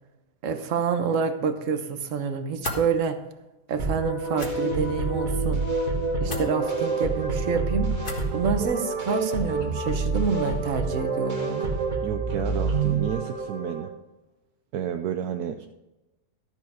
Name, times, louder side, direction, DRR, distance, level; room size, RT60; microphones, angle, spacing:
voice 1, 0.4-3.2 3.7-5.6 6.2-7.9 8.3-11.7, right 5 dB, 55° right, 8 dB, 1.2 m, -27 dB
sound 1, 2.6-2.8 4.3-4.5 6.3-6.5 8.0-8.3, left 2 dB, 30° left, 1.7 m, -32 dB
sound 2, 3.8-13.9, right 3 dB, 30° right, 1.5 m, -27 dB
voice 2, 12.0-13.9 14.7-15.7, right 9 dB, 70° right, 6 dB, 1.1 m, -31 dB
13.0 x 7.1 x 4.9 m, 1.0 s
omnidirectional pair, 1.8 m